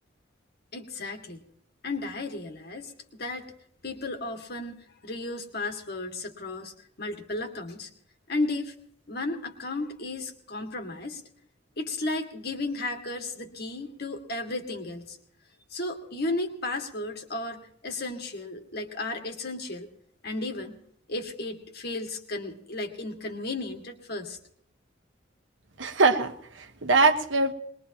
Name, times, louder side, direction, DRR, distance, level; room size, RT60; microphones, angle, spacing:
voice 1, 0.7-1.4 1.8-3.5 3.8-7.9 8.3-8.7 9.1-11.2 11.8-15.2 15.7-19.9 20.2-20.8 21.1-24.4, left 2 dB, 55° left, 4 dB, 2.0 m, -34 dB
voice 2, 25.8-27.5, right 3 dB, 85° right, 7 dB, 1.3 m, -23 dB
22.0 x 21.0 x 2.9 m, 0.68 s
head